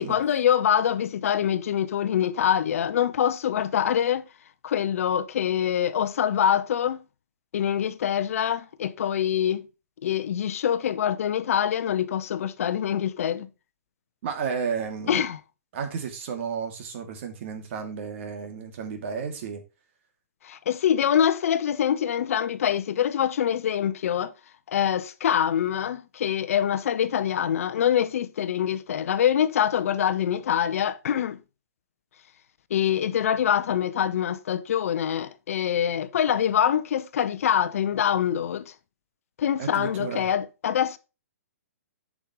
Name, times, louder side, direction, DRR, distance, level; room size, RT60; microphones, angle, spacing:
voice 1, 0.0-4.2 4.6-7.0 7.5-9.7 10.0-13.5 15.1-15.4 20.4-24.3 24.7-31.4 32.7-38.7 39.4-41.0, left 9 dB, 60° left, 0.7 m, -25 dB
voice 2, 14.2-15.3 15.7-19.6 39.6-40.3, right 6 dB, 50° right, 2.5 m, -32 dB
9.1 x 6.1 x 3.0 m
hypercardioid pair, 140°, 9 cm